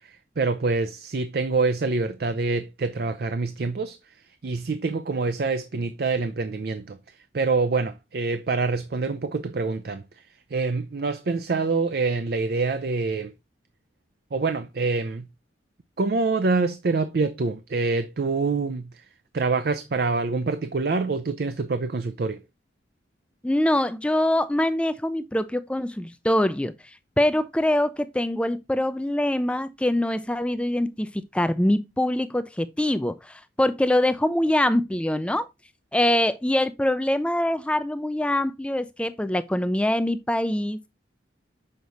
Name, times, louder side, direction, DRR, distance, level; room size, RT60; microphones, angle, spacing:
voice 1, 0.4-4.0 4.4-7.0 7.3-10.0 10.5-13.3 14.3-15.3 16.0-19.0 19.3-22.4, right 3 dB, 55° right, 0.5 m, -26 dB
voice 2, 23.4-26.7 27.2-35.5 35.9-40.9, left 1 dB, 5° left, 0.3 m, -24 dB
6.6 x 4.6 x 4.0 m
head